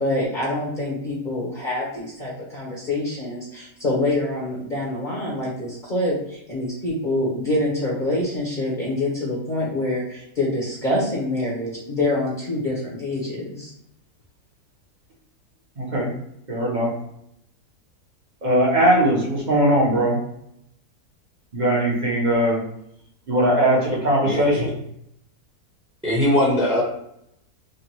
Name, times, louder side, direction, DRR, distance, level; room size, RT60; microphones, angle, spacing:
voice 1, 0.0-13.7, left 1 dB, 35° left, -6 dB, 1.2 m, -26 dB
voice 2, 15.8-16.1 16.5-16.9 18.4-20.2 21.5-22.6 23.3-24.7, right 1 dB, 30° right, -4 dB, 1.0 m, -20 dB
voice 3, 24.2-24.7 26.0-26.8, left 1 dB, 5° right, -6 dB, 0.9 m, -21 dB
5.1 x 2.5 x 3.0 m, 0.76 s
omnidirectional pair, 1.7 m